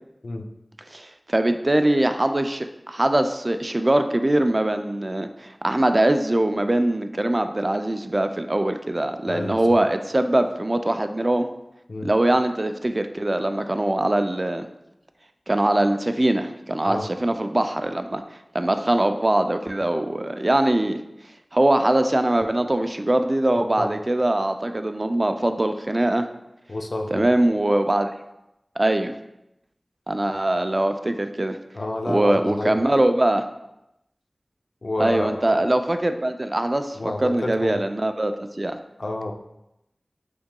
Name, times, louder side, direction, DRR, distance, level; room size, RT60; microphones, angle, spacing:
voice 1, 0.9-11.5 12.0-14.7 15.5-18.2 18.5-21.0 21.5-26.3 27.1-28.1 28.8-29.1 30.1-31.6 32.1-33.4 35.0-38.8, right 1 dB, 40° right, 8 dB, 0.3 m, -22 dB
voice 2, 9.3-9.8 11.9-12.1 16.9-17.1 23.8-23.9 26.7-27.3 31.7-32.8 34.8-35.7 36.9-37.8 39.0-39.3, left 2 dB, 70° left, 4 dB, 0.4 m, -30 dB
5.8 x 3.7 x 2.2 m, 0.88 s
wide cardioid pair, 50°, 0 cm